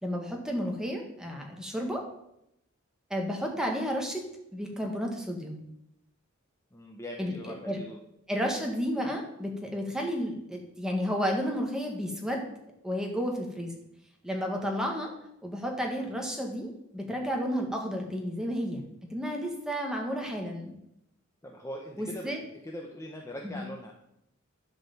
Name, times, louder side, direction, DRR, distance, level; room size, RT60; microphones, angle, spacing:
voice 1, 0.0-2.0 3.1-4.2 4.5-5.6 7.2-7.8 8.3-12.4 12.8-13.7 14.2-15.1 15.4-18.8 19.1-20.7 22.0-22.4 23.4-23.6, equal, 5° right, 0 dB, 1.8 m, -32 dB
voice 2, 6.7-8.0 21.4-23.9, equal, 15° left, 0 dB, 1.0 m, -41 dB
11.5 x 5.1 x 7.2 m, 0.80 s
head